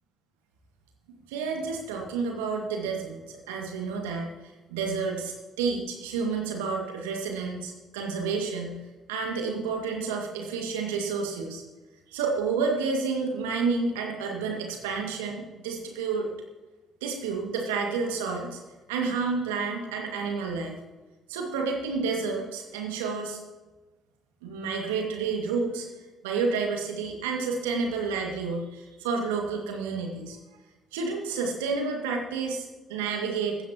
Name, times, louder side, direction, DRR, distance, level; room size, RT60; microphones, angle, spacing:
voice 1, 1.3-3.2 3.5-4.4 4.7-8.8 9.1-11.6 12.1-16.3 17.0-18.6 18.9-20.8 21.3-23.4 24.4-25.9 26.2-30.4 30.9-33.6, right 4 dB, 80° right, 1 dB, 2.1 m, -30 dB
16.5 x 13.5 x 3.0 m, 1.2 s
hypercardioid pair, 50°, 0 cm